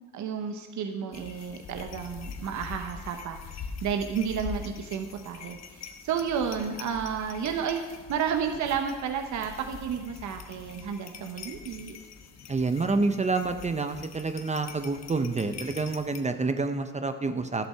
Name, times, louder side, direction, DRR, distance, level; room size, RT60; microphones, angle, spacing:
voice 1, 0.1-12.0, right 7 dB, 70° right, 5 dB, 1.0 m, -32 dB
sound 1, 1.1-16.2, left 5 dB, 60° left, 1.1 m, -44 dB
voice 2, 12.5-17.7, right 3 dB, 25° right, 8 dB, 0.7 m, -28 dB
11.5 x 8.1 x 5.7 m, 1.3 s
cardioid pair, 90°, 30 cm